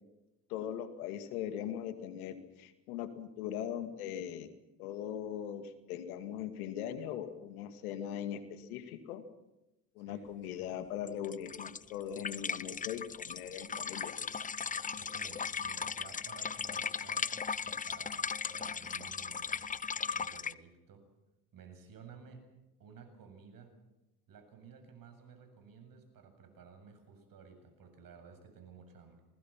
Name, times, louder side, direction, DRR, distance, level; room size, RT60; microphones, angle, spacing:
voice 1, 0.5-4.5 4.8-9.2 10.0-14.2, left 10 dB, 90° left, 9 dB, 2.5 m, -40 dB
sound 1, 11.1-20.5, left 6 dB, 20° left, 0.7 m, -37 dB
voice 2, 14.9-17.3 17.6-19.7 20.1-21.0 21.5-22.4 22.8-23.7 24.3-29.2, right 6 dB, 50° right, 7 dB, 7.8 m, -55 dB
28.5 x 20.5 x 6.0 m, 0.98 s
supercardioid pair, 80°, 43 cm